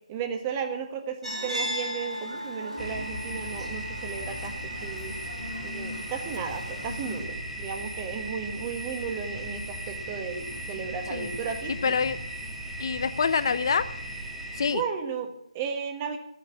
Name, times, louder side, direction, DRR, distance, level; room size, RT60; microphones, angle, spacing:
voice 1, 0.1-5.2 5.6-11.9 14.7-16.2, right 6 dB, 20° right, 5 dB, 1.5 m, -34 dB
sound 1, 1.2-7.2, equal, 70° right, 5.7 m, -37 dB
sound 2, 2.8-14.7, right 1 dB, 5° right, 1.4 m, -37 dB
voice 2, 11.7-12.2 12.8-13.9 14.5-14.8, left 6 dB, 40° left, 14 dB, 0.8 m, -26 dB
13.0 x 9.3 x 7.1 m, 0.77 s
figure-of-eight pair, 155°, 4 cm